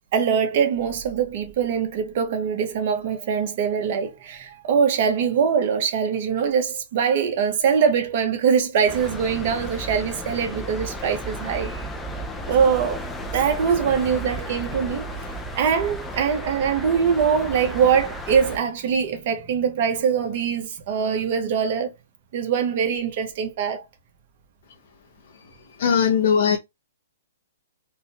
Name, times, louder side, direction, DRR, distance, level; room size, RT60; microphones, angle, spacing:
voice 1, 0.1-11.9 12.5-13.0 13.3-15.1 15.5-21.9 22.3-23.8, right 7 dB, 45° right, 1.0 m, -23 dB
sound 1, 8.9-18.6, equal, 10° left, 0.5 m, -33 dB
voice 2, 25.8-26.6, left 7 dB, 60° left, 0.7 m, -19 dB
3.5 x 2.3 x 2.8 m
hypercardioid pair, 150°, 0 cm